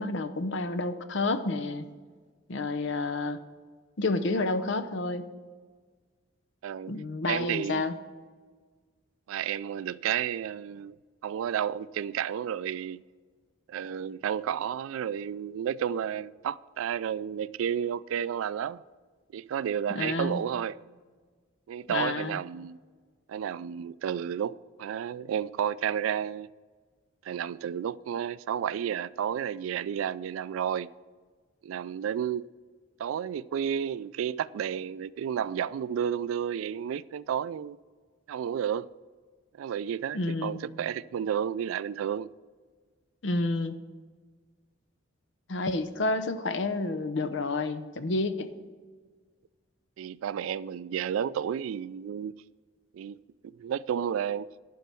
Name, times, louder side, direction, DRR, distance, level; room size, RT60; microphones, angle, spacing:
voice 1, 0.0-1.9 2.5-3.4 4.0-5.2 6.9-8.0 19.9-20.4 21.9-22.4 40.1-40.6 43.2-43.8 45.5-48.5, left 2 dB, 65° left, 0.7 m, -29 dB
voice 2, 6.6-6.9 7.3-7.8 9.3-11.0 11.2-13.0 13.7-18.8 19.3-20.8 21.7-22.8 23.3-26.5 27.2-30.9 31.6-32.5 33.0-37.8 38.3-38.9 39.6-42.3 50.0-52.3 52.9-53.2 53.6-54.5, right 8 dB, 85° right, 0.3 m, -31 dB
11.5 x 4.6 x 6.8 m
head